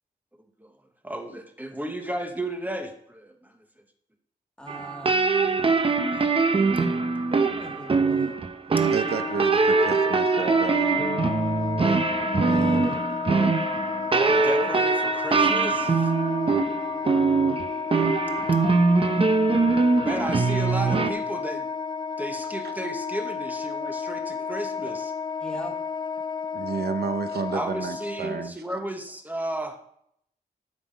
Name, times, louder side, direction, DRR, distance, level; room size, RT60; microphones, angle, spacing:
voice 1, 1.0-3.5 14.3-16.1 20.0-21.7 22.2-25.1 27.5-29.8, right 1 dB, 10° right, 4 dB, 1.1 m, -33 dB
voice 2, 4.6-5.1 7.3-8.3 12.5-13.0 25.4-25.7, equal, 5° left, 1 dB, 1.6 m, -40 dB
sound 1, 4.7-21.1, right 4 dB, 35° right, 0.7 m, -23 dB
voice 3, 8.9-11.0 22.6-22.7 24.1-24.2 24.9-25.0 26.5-28.6, right 6 dB, 85° right, 8 dB, 0.9 m, -31 dB
Wind instrument woodwind instrument, 9.0-28.5, left 5 dB, 30° left, 0.4 m, -32 dB
12.0 x 6.0 x 5.1 m, 0.71 s
wide cardioid pair, 160°, 16 cm